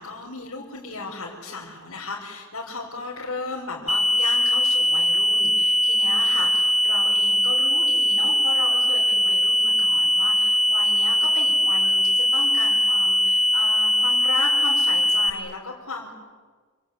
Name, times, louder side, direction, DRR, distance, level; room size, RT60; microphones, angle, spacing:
voice 1, 0.0-16.1, left 3 dB, 75° left, -4 dB, 4.9 m, -35 dB
sound 1, 3.9-15.3, left 1 dB, ahead, 2.5 m, -20 dB
28.0 x 25.0 x 8.6 m, 1.5 s
head